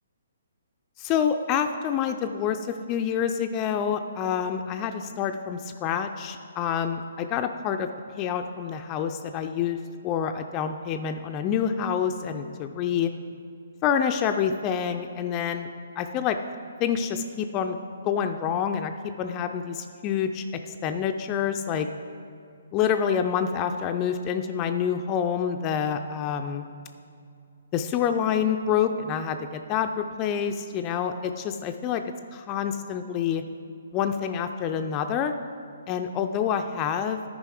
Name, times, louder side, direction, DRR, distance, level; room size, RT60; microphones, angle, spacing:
voice 1, 1.0-7.9 8.1-9.8 10.0-13.1 13.8-15.7 16.0-16.4 16.8-17.8 18.0-18.9 19.2-21.9 22.7-26.6 27.7-32.0 32.3-33.4 33.9-35.3 35.9-37.2, left 8 dB, 25° left, 7 dB, 0.4 m, -27 dB
9.9 x 5.1 x 4.8 m, 2.4 s
hypercardioid pair, 140°, 0 cm